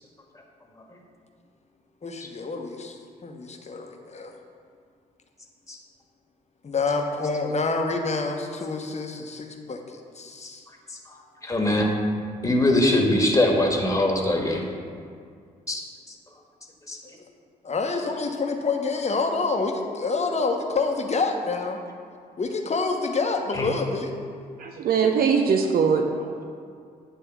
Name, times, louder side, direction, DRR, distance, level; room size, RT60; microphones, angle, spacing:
voice 1, 2.0-4.3 6.6-10.6 17.6-21.8 22.4-24.1, left 3 dB, 35° left, 3 dB, 1.0 m, -27 dB
voice 2, 11.4-11.9 12.4-14.6 15.7-15.8 16.9-17.0 23.6-23.7, left 1 dB, 15° left, 0 dB, 1.5 m, -21 dB
voice 3, 24.6-26.4, right 6 dB, 55° right, 3 dB, 0.7 m, -22 dB
9.8 x 3.4 x 6.0 m, 2.2 s
hypercardioid pair, 40°, 19 cm